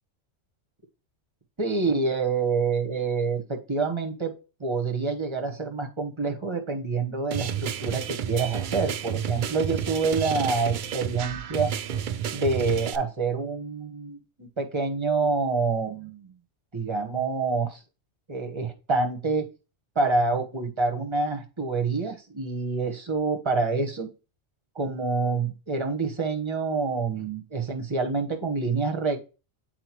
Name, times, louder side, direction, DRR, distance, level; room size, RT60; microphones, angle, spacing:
voice 1, 1.6-11.7 12.3-16.3 16.7-17.8 18.3-19.5 19.9-24.1 24.7-29.3, right 4 dB, 25° right, 3 dB, 1.1 m, -27 dB
sound 1, 7.3-13.0, right 9 dB, 65° right, 0.5 m, -31 dB
7.8 x 4.5 x 3.0 m, 0.31 s
omnidirectional pair, 1.3 m